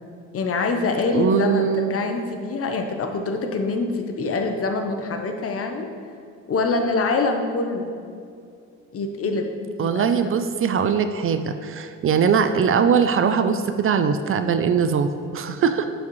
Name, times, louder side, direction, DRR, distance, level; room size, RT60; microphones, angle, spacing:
voice 1, 0.3-5.9 6.5-7.9 8.9-9.5 9.8-10.2, left 3 dB, 50° left, 5 dB, 0.8 m, -25 dB
voice 2, 1.1-2.0 9.8-15.9, right 6 dB, 45° right, 9 dB, 0.4 m, -21 dB
9.3 x 5.0 x 3.1 m, 2.4 s
cardioid pair, 90°, 30 cm